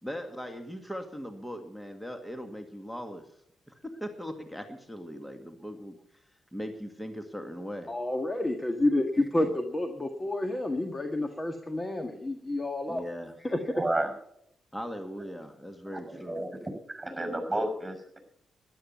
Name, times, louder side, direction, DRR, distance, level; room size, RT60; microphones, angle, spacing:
voice 1, 0.0-3.2 3.7-6.2 6.5-7.9 12.9-13.5 14.7-16.4, equal, 5° left, 6 dB, 2.0 m, -39 dB
voice 2, 7.9-13.0 13.4-13.6, left 1 dB, 25° left, 5 dB, 1.7 m, -29 dB
voice 3, 13.7-14.1 15.9-16.5 16.9-18.2, right 1 dB, 15° right, 5 dB, 6.4 m, -31 dB
12.5 x 11.0 x 7.1 m, 0.71 s
supercardioid pair, 50°, 0 cm